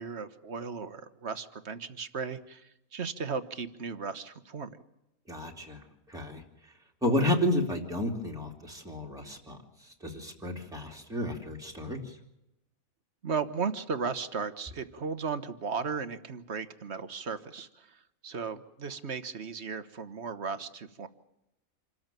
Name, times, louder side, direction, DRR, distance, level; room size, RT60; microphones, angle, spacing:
voice 1, 0.0-4.7 13.2-18.0 18.2-21.1, right 5 dB, 50° right, 11 dB, 1.4 m, -36 dB
voice 2, 5.3-5.8 6.1-6.4 7.0-9.6 10.0-12.0, left 1 dB, ahead, 0 dB, 2.8 m, -31 dB
27.0 x 13.5 x 9.0 m, 0.89 s
omnidirectional pair, 1.5 m